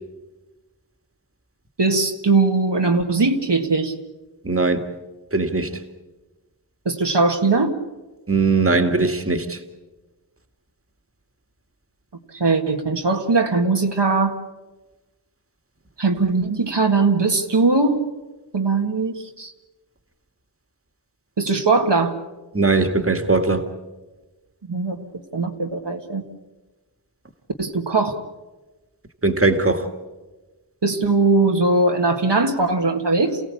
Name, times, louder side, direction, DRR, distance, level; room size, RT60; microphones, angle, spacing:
voice 1, 1.8-3.9 6.9-7.8 12.3-14.4 16.0-18.1 18.5-19.5 21.4-22.1 24.7-25.0 25.3-26.2 27.6-28.2 30.8-33.4, right 3 dB, 70° right, 1.9 m, -20 dB
voice 2, 4.4-4.8 5.3-5.7 8.3-9.6 22.5-23.6 29.2-29.9, right 3 dB, 30° right, 2.1 m, -19 dB
28.5 x 16.5 x 8.5 m
wide cardioid pair, 45°, 43 cm